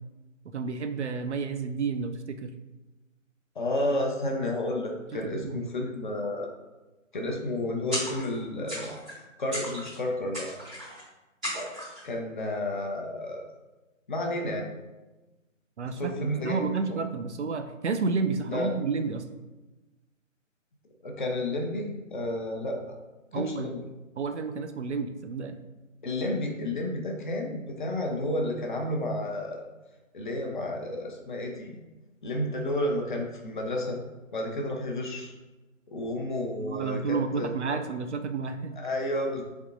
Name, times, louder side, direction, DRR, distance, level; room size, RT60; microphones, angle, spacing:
voice 1, 0.5-2.5 5.1-5.7 15.8-19.2 23.3-23.7 24.2-25.6 36.6-38.7, right 4 dB, 60° right, 7 dB, 0.5 m, -31 dB
voice 2, 3.6-6.5 7.1-8.9 9.4-10.5 12.0-13.4 14.1-14.7 16.0-16.6 18.5-18.7 21.0-22.8 23.3-23.8 26.0-29.6 30.1-31.8 32.2-34.0 34.3-35.3 35.9-37.8 38.8-39.4, left 1 dB, 40° left, 1 dB, 0.7 m, -31 dB
sound 1, 7.9-8.4 8.7-9.2 9.5-10.0 10.3-11.0 11.4-12.0, equal, 5° right, 0.5 m, -35 dB
4.3 x 3.5 x 2.5 m, 1.1 s
figure-of-eight pair, 145°, 39 cm